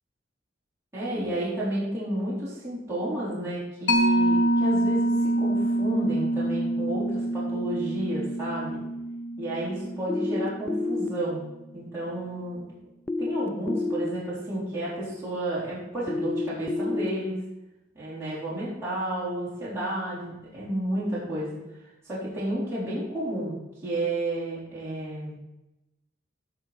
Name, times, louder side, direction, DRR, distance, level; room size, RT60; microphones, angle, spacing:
voice 1, 0.9-8.8 9.4-11.4 11.7-12.6 13.2-17.4 17.9-21.6 22.0-25.4, right 1 dB, 15° right, -10 dB, 3.8 m, -31 dB
Mallet percussion, 3.9-10.9, right 1 dB, 80° left, 1.3 m, -26 dB
sound 1, 10.1-11.1 13.1-14.1 16.1-17.1, left 3 dB, 10° left, 0.3 m, -28 dB
15.5 x 5.6 x 4.2 m, 0.96 s
head